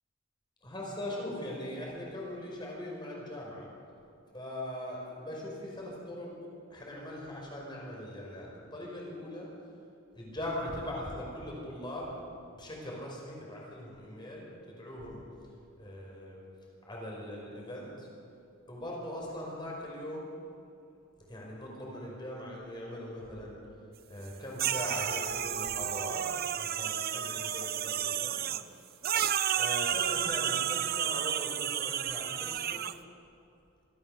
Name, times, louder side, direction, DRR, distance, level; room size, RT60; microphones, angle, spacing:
voice 1, 0.6-3.7 4.3-6.3 6.7-9.5 10.1-12.1 12.6-15.2 15.8-16.4 16.9-18.1 18.7-20.3 21.2-23.6 24.1-28.4 28.7-28.8 29.5-32.8, left 1 dB, 20° left, -2 dB, 5.3 m, -40 dB
sound 1, 24.6-28.6 29.0-32.9, right 9 dB, 45° right, 0.6 m, -31 dB
25.5 x 15.0 x 6.7 m, 2.5 s
head